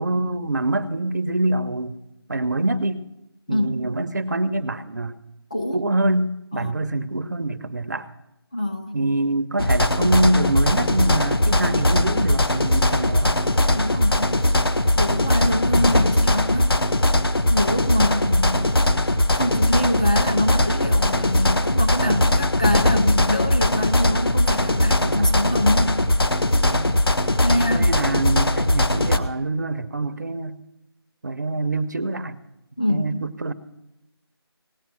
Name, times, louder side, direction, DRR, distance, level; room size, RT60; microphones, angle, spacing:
voice 1, 0.0-2.0 2.3-3.0 3.5-5.2 5.7-8.1 8.9-13.4 22.0-22.3 25.0-25.3 26.6-27.0 27.6-30.6 31.2-32.4 32.9-33.5, right 2 dB, 45° right, 12 dB, 0.7 m, -25 dB
voice 2, 3.5-3.9 5.5-5.8 6.5-6.9 8.5-9.1 13.7-14.4 14.9-16.8 17.5-19.0 19.3-26.0 27.4-27.9 32.8-33.2, left 1 dB, 15° left, 3 dB, 0.5 m, -25 dB
sound 1, 9.6-29.2, left 1 dB, 60° left, 1.3 m, -20 dB
17.5 x 9.1 x 6.1 m, 0.90 s
figure-of-eight pair, 170°, 14 cm